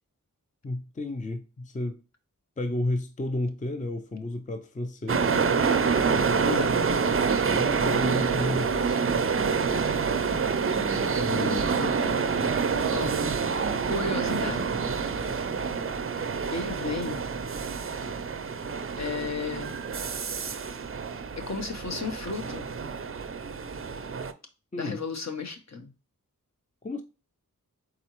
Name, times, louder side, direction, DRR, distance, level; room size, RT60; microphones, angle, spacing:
voice 1, 0.6-2.0 2.6-5.4 7.4-9.1 11.2-11.7 24.7-25.0 26.8-27.0, left 2 dB, 20° left, 0.5 m, -32 dB
sound 1, 5.1-24.3, right 5 dB, 40° right, 0.5 m, -27 dB
voice 2, 6.5-6.8 11.4-12.5 12.9-13.1 13.8-14.8 16.5-17.2 19.0-19.8 21.3-22.7 24.8-25.9, left 4 dB, 50° left, 0.9 m, -34 dB
4.2 x 3.8 x 3.0 m
wide cardioid pair, 45°, 34 cm